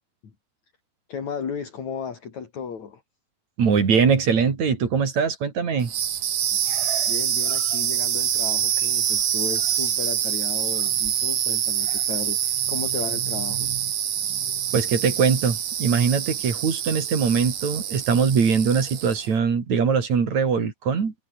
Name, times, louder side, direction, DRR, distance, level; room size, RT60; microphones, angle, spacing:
voice 1, 1.1-3.0 6.5-13.7, left 6 dB, 65° left, 4.6 m, -35 dB
voice 2, 3.6-5.9 14.7-21.1, right 6 dB, 65° right, 4.7 m, -22 dB
sound 1, 5.8-19.3, right 10 dB, 85° right, 3.7 m, -26 dB
omnidirectional pair, 3.6 m